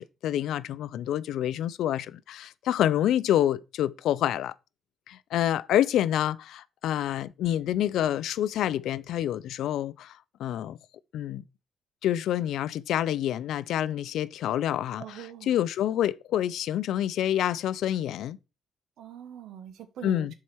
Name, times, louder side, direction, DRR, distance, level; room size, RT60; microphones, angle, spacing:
voice 1, 0.0-4.5 5.1-10.8 11.1-11.4 12.0-18.4 20.0-20.3, left 11 dB, 80° left, 0.4 m, -27 dB
voice 2, 15.0-15.5 19.0-20.3, right 9 dB, 80° right, 1.0 m, -43 dB
7.2 x 4.7 x 4.5 m
cardioid pair, 90°, 0 cm